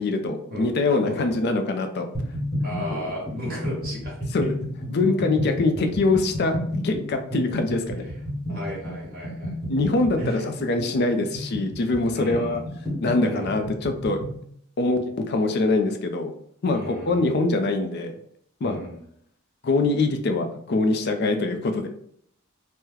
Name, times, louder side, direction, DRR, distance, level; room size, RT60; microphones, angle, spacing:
voice 1, 0.0-2.1 2.9-3.0 4.3-4.6 4.9-8.1 9.7-12.6 13.0-14.2 14.8-15.0 15.2-16.3 16.6-18.1 18.6-18.8 19.6-21.9, left 2 dB, 50° left, 6 dB, 0.4 m, -23 dB
voice 2, 1.0-1.3 2.6-4.1 8.5-9.5 10.2-10.5 12.1-12.6 13.2-13.6 16.7-17.4 18.6-19.0, equal, 45° right, -5 dB, 1.0 m, -34 dB
sound 1, 2.1-14.4, equal, ahead, 1.2 m, -31 dB
2.8 x 2.1 x 3.7 m, 0.68 s
head